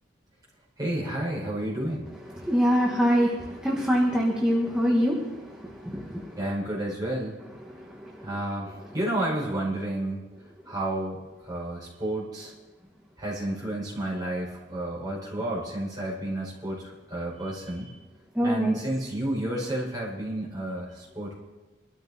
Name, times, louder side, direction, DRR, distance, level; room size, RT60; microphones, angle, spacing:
voice 1, 0.8-2.1 6.4-7.4 8.2-10.2 10.7-12.5 13.2-17.9 18.4-21.4, right 1 dB, 20° right, -4 dB, 5.5 m, -31 dB
voice 2, 2.3-6.4 7.7-8.3 18.3-18.8, equal, 5° right, -4 dB, 1.4 m, -25 dB
23.5 x 13.5 x 2.8 m, 1.2 s
head